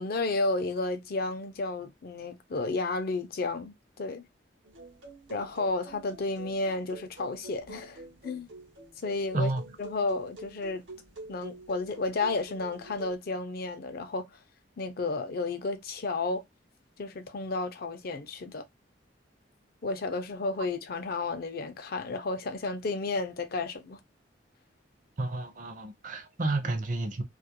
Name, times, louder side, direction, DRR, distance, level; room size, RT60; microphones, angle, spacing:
voice 1, 0.0-4.2 5.3-8.5 9.0-9.5 9.8-10.8 11.3-14.3 14.8-16.4 17.0-18.6 19.8-24.0, left 3 dB, 55° left, 0.5 m, -32 dB
sound 1, 4.6-13.2, right 2 dB, 80° right, 0.8 m, -47 dB
voice 2, 25.2-27.2, right 2 dB, 45° right, 0.6 m, -30 dB
2.3 x 2.1 x 2.8 m
head